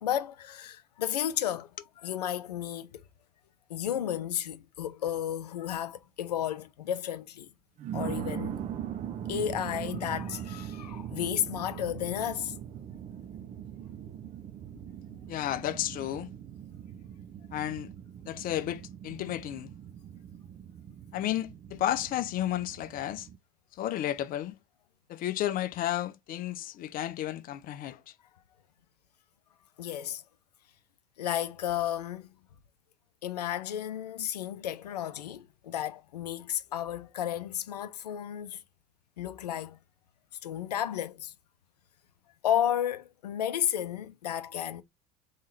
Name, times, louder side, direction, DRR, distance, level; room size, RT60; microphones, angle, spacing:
voice 1, 0.0-1.7 2.0-3.0 3.7-7.5 7.9-8.6 9.3-12.5 29.8-30.2 31.2-32.3 33.2-38.6 39.2-39.8 40.4-41.3 42.4-44.8, left 10 dB, 80° left, 0.6 m, -32 dB
sound 1, 5.1-5.3 5.9-6.0 7.8-23.4, right 9 dB, 35° right, 0.6 m, -41 dB
voice 2, 15.3-16.3 17.5-17.9 18.3-19.7 21.1-23.3 23.7-24.6 25.1-28.0, left 12 dB, 45° left, 0.7 m, -32 dB
3.7 x 3.2 x 3.9 m
hypercardioid pair, 75°, 20 cm